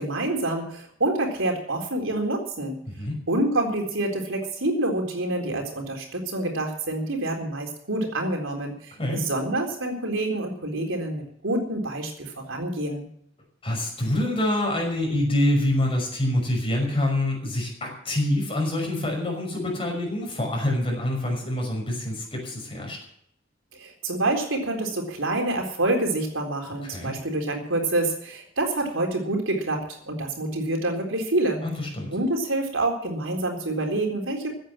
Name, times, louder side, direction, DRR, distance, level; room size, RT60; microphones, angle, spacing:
voice 1, 0.0-2.8 3.3-13.1 23.7-31.6 32.1-34.5, right 2 dB, 80° right, 3 dB, 3.9 m, -27 dB
voice 2, 2.9-3.2 9.0-9.2 13.6-23.0 26.8-27.1 31.6-32.1, left 1 dB, 30° left, 0 dB, 5.8 m, -26 dB
15.5 x 9.2 x 7.5 m, 0.68 s
head